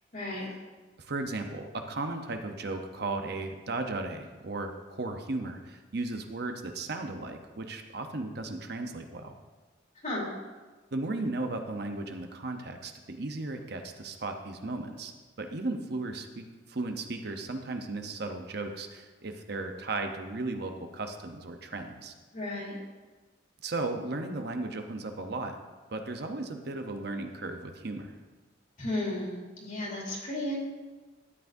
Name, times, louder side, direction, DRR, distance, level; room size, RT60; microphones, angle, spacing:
voice 1, 0.1-0.5 10.0-10.3 22.3-22.8 28.8-30.6, left 1 dB, 45° left, -4 dB, 2.8 m, -34 dB
voice 2, 1.0-9.3 10.9-15.1 15.4-22.1 23.6-25.6 25.9-28.2, right 2 dB, 60° right, 5 dB, 0.8 m, -35 dB
13.0 x 9.4 x 2.7 m, 1.3 s
head